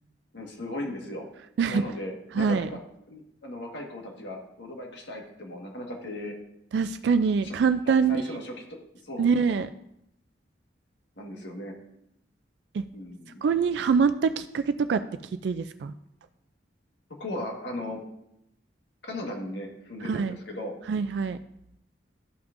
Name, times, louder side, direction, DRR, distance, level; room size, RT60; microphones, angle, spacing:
voice 1, 0.3-1.3 1.7-2.8 3.1-6.3 7.4-7.5 7.8-9.3 11.2-11.7 12.9-13.4 17.2-18.0 19.0-20.8, left 1 dB, 75° left, 1 dB, 1.6 m, -37 dB
voice 2, 2.4-2.7 6.7-8.2 9.2-9.7 12.7-12.8 13.4-15.0 15.4-15.9 20.0-20.4 20.9-21.4, right 5 dB, 70° right, 11 dB, 0.3 m, -24 dB
13.0 x 6.0 x 2.6 m, 0.79 s
head